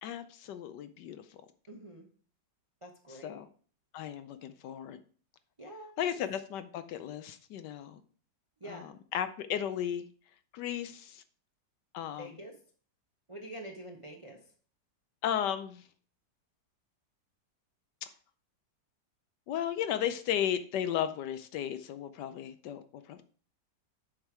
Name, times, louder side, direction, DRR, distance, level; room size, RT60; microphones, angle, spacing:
voice 1, 0.0-1.2 3.2-3.5 3.9-5.0 6.0-8.0 8.7-10.0 10.5-11.2 11.9-12.3 15.2-15.8 18.0-18.1 19.5-23.2, left 10 dB, 75° left, 11 dB, 1.2 m, -35 dB
voice 2, 1.7-2.1 2.8-3.4 5.6-6.2 8.6-8.9 12.2-12.5 13.3-14.4, right 1 dB, 25° right, 1 dB, 0.7 m, -46 dB
7.2 x 5.2 x 4.6 m, 0.44 s
omnidirectional pair, 2.0 m